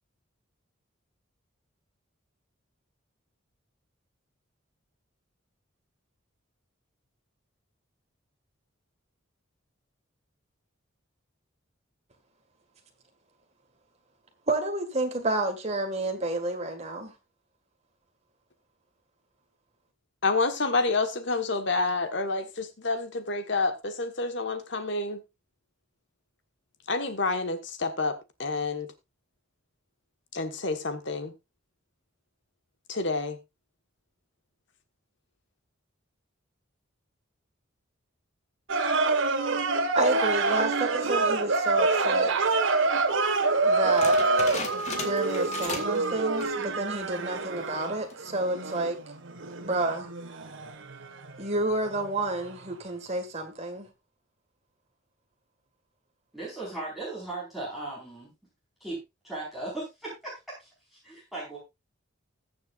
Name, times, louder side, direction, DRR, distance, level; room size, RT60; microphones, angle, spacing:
voice 1, 14.5-17.1 39.9-42.3 43.5-44.2 44.9-49.0 49.6-50.1 51.4-53.9, right 2 dB, 30° right, 1.8 m, -30 dB
voice 2, 20.2-25.2 26.9-28.9 30.3-31.3 32.9-33.4, left 3 dB, 60° left, 1.4 m, -28 dB
sound 1, 38.7-52.1 52.4-52.5, right 3 dB, 70° right, 1.5 m, -26 dB
sound 2, 44.0-46.0 46.3-46.7 47.1-47.2 47.9-48.3, left 3 dB, 35° left, 1.9 m, -37 dB
voice 3, 56.3-58.3 58.8-59.0 59.2-61.6, right 2 dB, ahead, 4.6 m, -37 dB
20.5 x 7.0 x 2.5 m
head